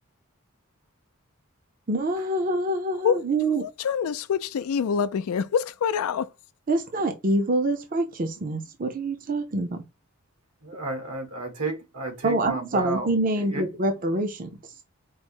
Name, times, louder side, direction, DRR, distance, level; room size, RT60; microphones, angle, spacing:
voice 1, 1.9-3.7 6.7-9.8 12.2-14.5, right 2 dB, 40° right, 0.5 m, -26 dB
voice 2, 3.6-6.3, left 7 dB, 80° left, 0.3 m, -25 dB
voice 3, 10.6-13.6, right 2 dB, 80° right, 1.4 m, -32 dB
4.6 x 2.0 x 4.3 m
head